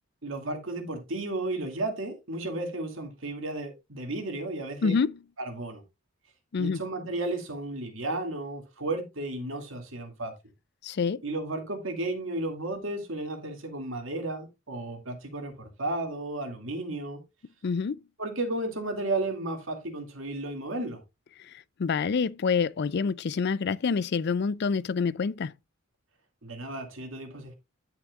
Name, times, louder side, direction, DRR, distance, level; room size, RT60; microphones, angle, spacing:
voice 1, 0.2-5.0 5.4-5.8 6.6-10.3 11.2-17.2 18.2-21.0 26.4-27.5, right 2 dB, 65° right, 2.4 m, -33 dB
voice 2, 4.8-5.2 6.5-6.8 10.8-11.2 17.6-18.0 21.4-21.5 21.8-25.5, left 5 dB, 50° left, 0.4 m, -27 dB
10.0 x 8.6 x 2.5 m
head